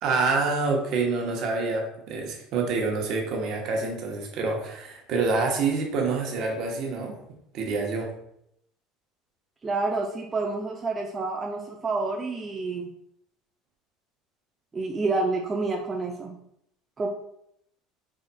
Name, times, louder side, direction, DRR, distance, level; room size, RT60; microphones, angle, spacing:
voice 1, 0.0-7.2 7.5-8.1, right 4 dB, 60° right, 1 dB, 1.1 m, -27 dB
voice 2, 9.6-12.9 14.7-16.4 17.0-17.1, right 3 dB, 25° right, 1 dB, 0.5 m, -28 dB
4.9 x 4.0 x 2.3 m, 0.75 s
supercardioid pair, 95°, 0 cm